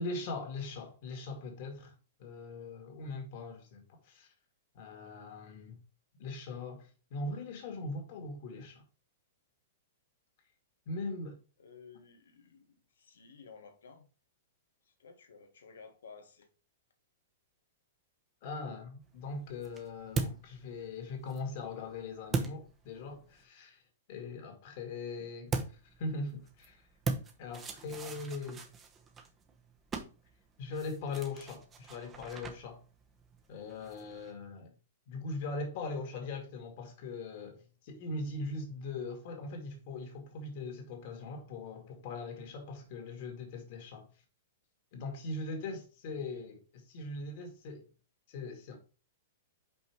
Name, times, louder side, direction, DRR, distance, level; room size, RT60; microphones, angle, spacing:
voice 1, 0.0-1.9 2.2-4.3 4.7-5.8 6.2-8.8 10.9-11.4 18.4-23.8 24.1-25.5 26.0-26.8 27.4-28.7 30.6-32.8 33.5-34.7 35.1-44.1 44.9-47.9 48.3-48.8, left 3 dB, 50° left, 2.1 m, -40 dB
voice 2, 11.6-14.1 14.8-16.5 25.2-25.5 46.1-46.5, left 5 dB, 90° left, 1.5 m, -55 dB
sound 1, 19.0-23.4 25.5-34.3, right 4 dB, 20° right, 0.9 m, -41 dB
5.5 x 4.5 x 4.6 m
hypercardioid pair, 140°, 0 cm